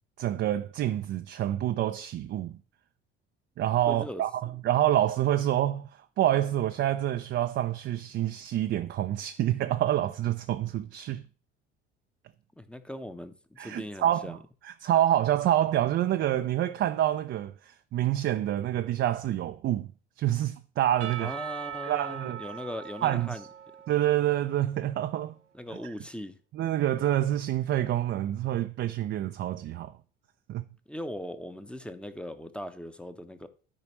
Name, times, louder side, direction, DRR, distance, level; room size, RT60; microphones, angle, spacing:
voice 1, 0.2-2.6 3.6-5.9 6.2-11.3 13.6-14.4 14.6-19.9 20.2-21.4 21.8-22.4 23.0-23.4 23.9-25.3 25.7-25.9 26.5-29.9 30.5-30.6, right 12 dB, 35° right, 0.4 m, -27 dB
voice 2, 3.9-4.2 12.6-14.4 21.2-23.4 25.5-26.4 30.9-33.5, equal, 5° left, 0.8 m, -39 dB
Percussion / Church bell, 21.0-25.0, right 9 dB, 90° right, 0.6 m, -41 dB
12.5 x 5.0 x 3.0 m
figure-of-eight pair, 60°, 34 cm